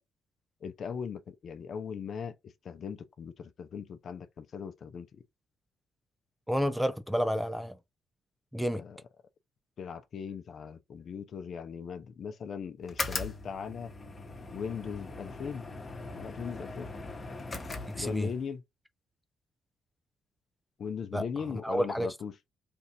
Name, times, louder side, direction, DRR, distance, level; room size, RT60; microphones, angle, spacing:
voice 1, 0.6-5.2 8.8-9.0 9.8-13.9 14.5-15.7 16.1-16.9 17.9-18.6 20.8-22.4, left 6 dB, 55° left, 0.7 m, -39 dB
voice 2, 6.5-7.7 8.5-8.8 17.9-18.3 21.1-21.2 21.6-22.1, equal, ahead, 0.5 m, -29 dB
sound 1, 12.8-18.5, left 3 dB, 30° left, 1.1 m, -40 dB
3.4 x 2.6 x 4.3 m
cardioid pair, 90°, 0 cm